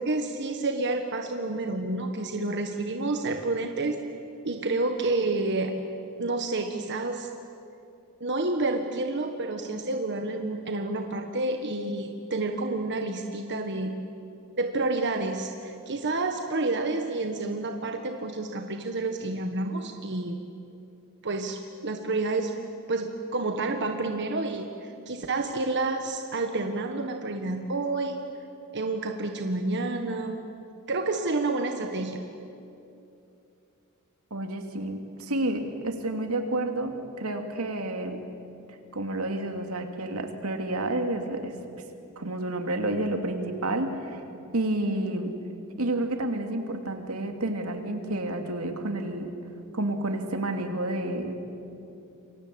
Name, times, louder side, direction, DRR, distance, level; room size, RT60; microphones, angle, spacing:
voice 1, 0.0-4.0 4.4-5.7 6.2-7.3 8.2-13.9 14.6-20.4 21.2-22.5 22.9-28.2 28.7-30.4 30.9-32.2, right 2 dB, 55° right, 5 dB, 1.4 m, -29 dB
voice 2, 34.3-38.2 38.7-41.6 42.2-44.2 44.5-45.4 45.8-49.4 49.7-51.4, right 1 dB, 85° right, 5 dB, 2.8 m, -30 dB
28.0 x 23.5 x 8.6 m, 2.7 s
head